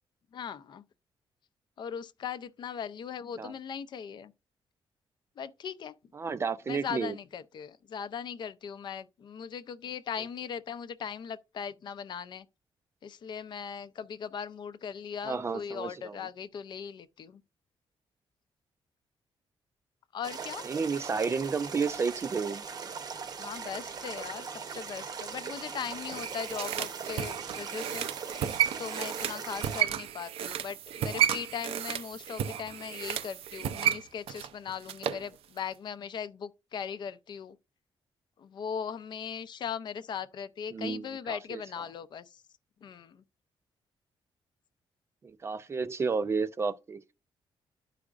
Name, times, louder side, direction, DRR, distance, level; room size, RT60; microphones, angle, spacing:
voice 1, 0.3-0.8 1.8-4.3 5.4-5.9 6.7-12.4 13.0-17.4 20.1-20.7 23.4-28.1 28.8-37.6 38.4-42.4 42.8-43.2, left 7 dB, 50° left, 0.5 m, -39 dB
voice 2, 6.1-7.2 15.2-16.2 20.6-22.6 40.7-41.6 45.4-47.0, right 5 dB, 25° right, 0.4 m, -31 dB
sound 1, 20.2-29.8, right 6 dB, 45° right, 0.7 m, -40 dB
sound 2, 25.8-35.3 35.6-35.7, right 10 dB, 85° right, 0.5 m, -32 dB
12.5 x 4.9 x 2.4 m
wide cardioid pair, 165°, 10 cm